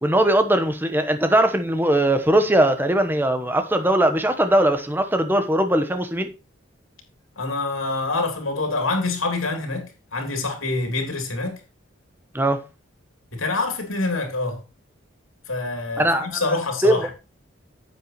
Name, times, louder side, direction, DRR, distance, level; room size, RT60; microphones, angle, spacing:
voice 1, 0.0-6.3 12.3-12.6 16.0-16.4 16.8-17.0, right 1 dB, 10° right, 1.1 m, -20 dB
voice 2, 7.4-11.6 13.3-14.6 15.5-17.1, left 3 dB, 90° left, 3.2 m, -26 dB
10.0 x 8.0 x 3.1 m
head